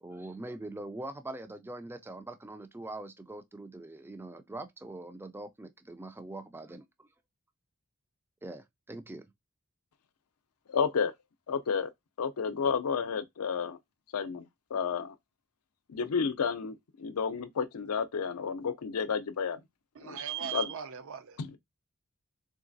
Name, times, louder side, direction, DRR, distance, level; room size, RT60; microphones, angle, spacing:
voice 1, 0.0-7.1 8.4-9.3, right 2 dB, 10° right, 0.3 m, -43 dB
voice 2, 10.7-11.1 11.5-11.9 12.2-13.8 14.1-14.5 14.7-15.1 15.9-19.6 20.0-20.2 20.5-20.7 21.4-21.6, left 6 dB, 80° left, 0.5 m, -31 dB
voice 3, 20.0-21.4, right 9 dB, 60° right, 0.5 m, -38 dB
3.7 x 3.2 x 2.5 m
head